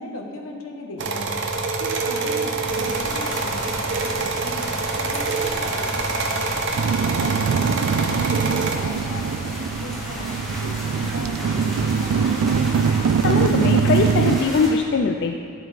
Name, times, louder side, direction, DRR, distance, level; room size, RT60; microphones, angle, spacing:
voice 1, 0.0-1.4 1.8-6.5 7.0-12.5, left 1 dB, 80° left, 2 dB, 1.0 m, -37 dB
sound 1, 1.0-8.8, right 3 dB, 60° right, 0.7 m, -26 dB
sound 2, 2.6-14.7, equal, ahead, 1.9 m, -34 dB
sound 3, 6.7-14.4, right 6 dB, 85° right, 0.3 m, -22 dB
voice 2, 13.2-15.3, left 4 dB, 55° left, 3 dB, 0.3 m, -21 dB
9.7 x 7.8 x 3.3 m, 2.4 s
head